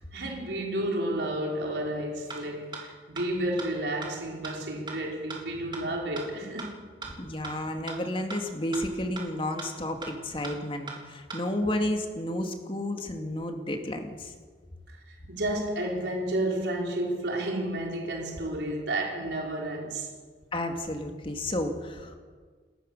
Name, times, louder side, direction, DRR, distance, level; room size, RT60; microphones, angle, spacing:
voice 1, 0.1-6.8 14.9-20.1, right 1 dB, 80° right, 4.2 m, -31 dB
sound 1, 2.3-2.4 2.7-2.8 3.2-3.3 3.6-3.7 4.0-4.1 4.4-4.5 4.9-5.0 5.3-5.4 5.7-5.8 6.2-6.3 6.6-6.7 7.0-7.1 7.4-7.5 7.9-8.0 8.3-8.4 8.7-8.8 9.2-9.3 9.6-9.7 10.0-10.1 10.4-10.5 10.9-11.0 11.3-11.4, right 4 dB, 25° right, 3.8 m, -37 dB
voice 2, 7.1-14.3 20.5-22.2, left 1 dB, 30° left, 2.3 m, -32 dB
29.0 x 14.5 x 6.7 m
head